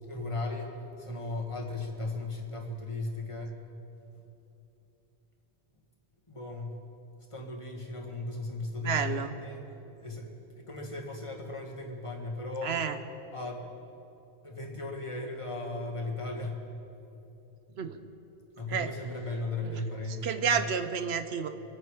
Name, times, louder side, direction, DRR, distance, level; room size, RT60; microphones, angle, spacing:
voice 1, 0.1-3.6 6.3-6.7 7.3-9.6 10.0-12.8 13.3-13.7 14.4-16.7 18.6-20.5, left 2 dB, 30° left, 0 dB, 1.9 m, -36 dB
voice 2, 8.8-9.4 12.6-13.0 17.8-18.0 18.7-18.9 19.6-19.8 20.1-21.5, right 7 dB, 75° right, 9 dB, 1.0 m, -30 dB
26.5 x 8.9 x 4.9 m, 2.9 s
omnidirectional pair, 1.1 m